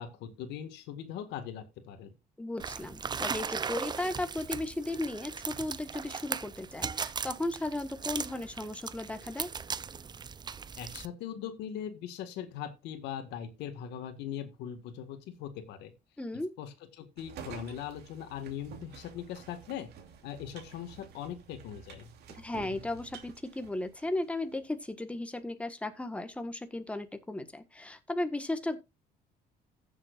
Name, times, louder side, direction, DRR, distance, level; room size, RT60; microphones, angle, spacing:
voice 1, 0.0-2.1 10.8-15.9 16.6-19.9 20.2-22.1, left 9 dB, 85° left, 1.8 m, -40 dB
voice 2, 2.4-9.5 16.2-16.5 22.3-28.8, left 2 dB, 5° left, 1.4 m, -35 dB
sound 1, 2.6-11.1, right 6 dB, 25° right, 0.6 m, -38 dB
sound 2, 17.2-24.4, right 6 dB, 75° right, 2.8 m, -50 dB
15.5 x 7.4 x 2.5 m
cardioid pair, 110°, 17 cm